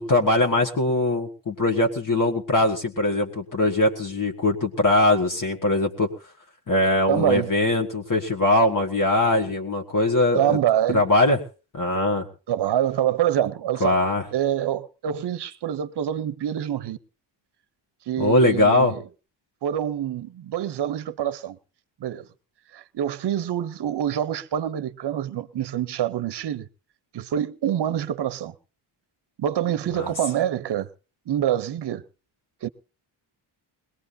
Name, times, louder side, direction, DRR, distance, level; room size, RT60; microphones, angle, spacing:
voice 1, 0.0-6.1 6.7-10.6 10.9-11.4 11.7-12.3 13.8-14.3 18.2-18.9 30.0-30.1, left 2 dB, 40° left, 1.8 m, -21 dB
voice 2, 7.1-7.5 10.3-11.0 12.5-14.0 14.3-17.0 18.1-19.0 19.6-21.6 22.0-22.3 22.7-26.7 27.1-28.5 29.4-30.9 31.3-32.0 32.6-32.7, right 10 dB, 55° right, 0.8 m, -26 dB
21.0 x 18.5 x 2.7 m
cardioid pair, 80°, 48 cm